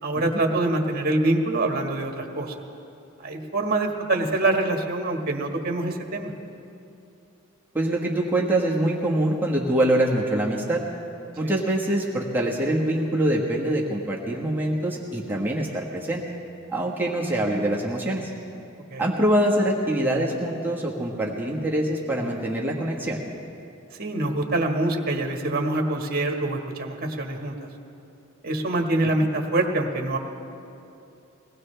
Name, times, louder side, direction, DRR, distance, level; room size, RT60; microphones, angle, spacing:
voice 1, 0.0-2.5 3.2-6.3 11.4-11.6 18.9-19.1 24.0-27.6 28.4-30.2, right 2 dB, 45° right, 2 dB, 1.5 m, -25 dB
voice 2, 7.7-10.8 11.4-16.2 16.7-18.3 19.0-23.2, right 1 dB, 10° right, -3 dB, 1.3 m, -24 dB
22.5 x 18.0 x 3.3 m, 2.8 s
head